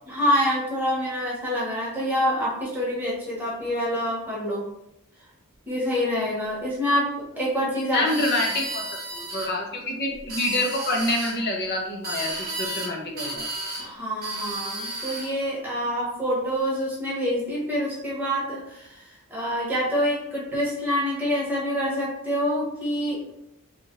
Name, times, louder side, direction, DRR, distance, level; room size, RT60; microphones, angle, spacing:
voice 1, 0.1-4.6 5.7-7.1 7.4-8.1 13.8-23.2, equal, 10° right, -6 dB, 1.0 m, -26 dB
voice 2, 7.9-8.8 9.1-13.5, left 2 dB, 50° left, 1 dB, 0.6 m, -27 dB
sound 1, 8.0-9.5 10.2-11.4 12.0-12.9 13.2-13.9 14.2-15.3, right 2 dB, 45° right, 0.8 m, -33 dB
2.7 x 2.4 x 3.0 m, 0.82 s
head